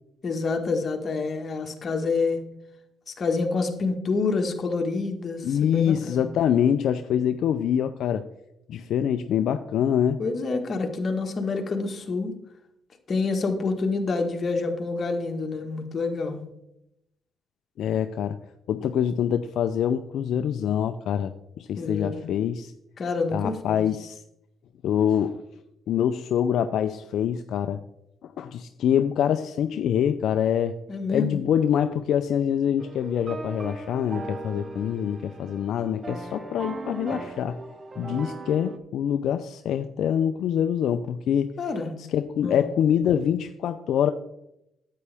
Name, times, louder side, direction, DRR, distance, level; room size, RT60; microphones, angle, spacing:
voice 1, 0.2-2.4 3.2-6.3 10.2-12.3 13.1-16.4 21.8-22.2 23.0-23.8 30.9-31.4 41.6-41.9 42.4-42.7, left 4 dB, 45° left, 4 dB, 1.4 m, -27 dB
voice 2, 5.4-8.3 8.7-10.2 17.8-18.4 18.7-22.7 23.3-24.2 24.8-25.4 25.9-27.8 28.4-30.8 31.1-37.6 38.0-41.5 42.0-44.1, left 9 dB, 75° left, 9 dB, 0.4 m, -25 dB
sound 1, 32.8-38.8, right 3 dB, 35° right, 0.8 m, -38 dB
9.6 x 8.4 x 3.4 m, 0.84 s
cardioid pair, 90°, 0 cm